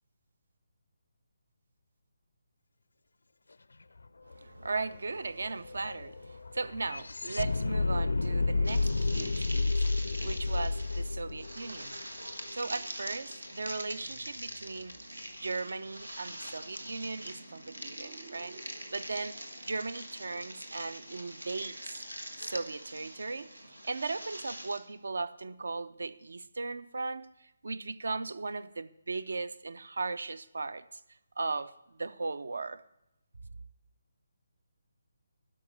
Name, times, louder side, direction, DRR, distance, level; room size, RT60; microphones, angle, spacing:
sound 1, 4.0-4.1 4.3-12.5, left 3 dB, 70° left, 0.4 m, -31 dB
voice 1, 4.3-9.8 10.2-12.0 12.5-14.9 15.4-19.4 19.7-22.0 22.4-31.0 31.4-32.8, right 3 dB, 65° right, 0.6 m, -37 dB
sound 2, 8.3-20.7 21.3-22.3, right 5 dB, 45° right, 4.7 m, -59 dB
sound 3, 8.6-24.8, equal, 90° right, 1.5 m, -44 dB
12.5 x 5.5 x 8.7 m
figure-of-eight pair, 145°, 0 cm